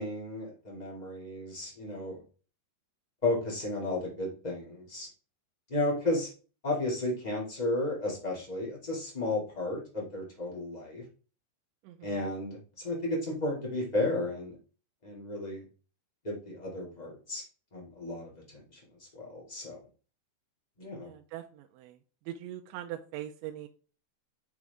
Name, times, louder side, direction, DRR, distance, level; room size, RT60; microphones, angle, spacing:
voice 1, 0.0-2.2 3.2-5.1 5.7-6.3 6.6-11.0 12.0-14.5 15.0-15.6 16.2-17.4 17.7-18.8 19.1-19.8 20.8-21.1, left 2 dB, 25° left, -4 dB, 0.9 m, -33 dB
voice 2, 11.8-12.3 21.0-22.0 22.3-23.7, right 12 dB, 85° right, 4 dB, 2.9 m, -42 dB
6.5 x 6.1 x 3.5 m, 0.37 s
omnidirectional pair, 5.4 m